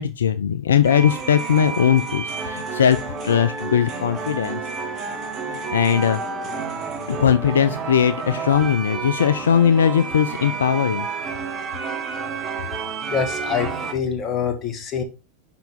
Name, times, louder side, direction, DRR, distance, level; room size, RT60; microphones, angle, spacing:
voice 1, 0.0-3.0 3.2-4.6 5.5-6.2 7.1-11.1, left 8 dB, 80° left, 11 dB, 0.4 m, -19 dB
sound 1, 0.8-13.9, right 5 dB, 40° right, 1.7 m, -30 dB
voice 2, 13.1-15.0, left 7 dB, 35° left, 5 dB, 1.6 m, -25 dB
5.8 x 5.7 x 3.5 m, 0.28 s
hypercardioid pair, 90°, 0 cm